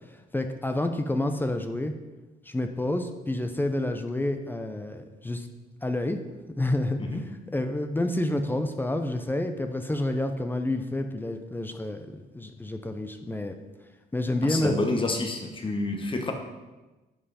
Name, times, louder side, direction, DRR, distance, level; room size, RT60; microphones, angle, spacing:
voice 1, 0.3-1.9 2.5-5.5 5.8-6.2 6.6-7.0 7.5-13.6 14.1-15.0, left 1 dB, 10° left, 6 dB, 0.6 m, -29 dB
voice 2, 14.4-16.3, left 2 dB, 30° left, 4 dB, 1.3 m, -28 dB
10.5 x 5.7 x 4.2 m, 1.1 s
cardioid pair, 115°, 17 cm